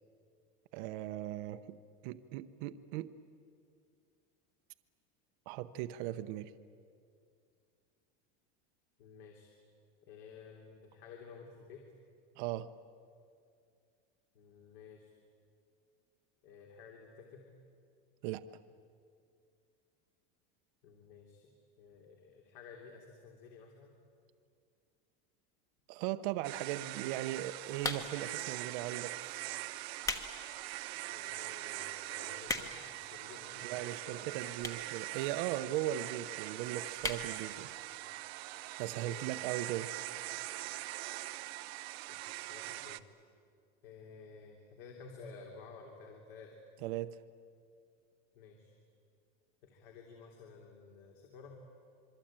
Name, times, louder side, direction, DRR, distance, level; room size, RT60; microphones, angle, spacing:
voice 1, 0.7-1.8 2.0-3.1 5.5-6.5 12.4-12.7 18.2-18.4 25.9-29.5 33.6-37.7 38.8-39.9 46.8-47.2, right 13 dB, 55° right, 11 dB, 0.9 m, -38 dB
voice 2, 9.0-9.5 10.1-11.8 14.3-15.1 16.4-17.5 20.8-21.5 21.8-24.0 31.1-34.5 38.9-39.4 42.1-43.2 43.8-46.6 48.3-48.7 49.6-51.6, left 5 dB, 65° left, 1 dB, 3.3 m, -53 dB
sound 1, 26.4-43.0, right 18 dB, 90° right, 0.9 m, -42 dB
sound 2, 27.8-28.3 29.1-29.3 29.8-30.3 30.7-30.8 31.5-31.6 31.8-31.9 32.1-32.9 33.7-33.8 34.6-34.9 35.2-35.3 35.5-35.6 35.8-35.9 36.3-36.5 37.0-37.3 37.7-37.8 37.9-38.0, left 2 dB, 10° left, 1.2 m, -37 dB
27.0 x 23.0 x 8.9 m, 2.3 s
cardioid pair, 175°, 30 cm